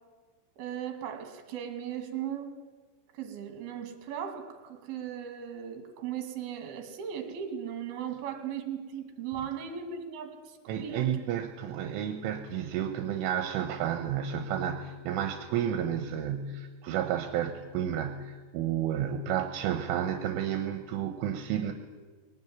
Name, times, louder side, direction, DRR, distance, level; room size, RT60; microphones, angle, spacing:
voice 1, 0.6-2.5 3.1-11.1, right 8 dB, 55° right, 5 dB, 3.9 m, -37 dB
voice 2, 10.7-21.7, right 9 dB, 80° right, 6 dB, 3.4 m, -31 dB
21.5 x 18.0 x 9.6 m, 1.4 s
omnidirectional pair, 5.8 m